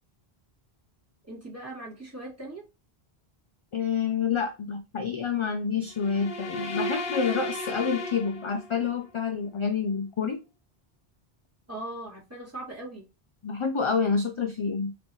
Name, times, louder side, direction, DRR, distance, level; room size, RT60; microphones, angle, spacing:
voice 1, 1.2-2.6 11.7-13.1, right 1 dB, 15° right, -6 dB, 2.2 m, -39 dB
voice 2, 3.7-10.4 13.4-14.9, left 6 dB, 45° left, 6 dB, 0.4 m, -28 dB
sound 1, 5.9-9.0, left 2 dB, 65° left, 0.9 m, -34 dB
4.5 x 3.2 x 2.9 m, 0.28 s
omnidirectional pair, 1.0 m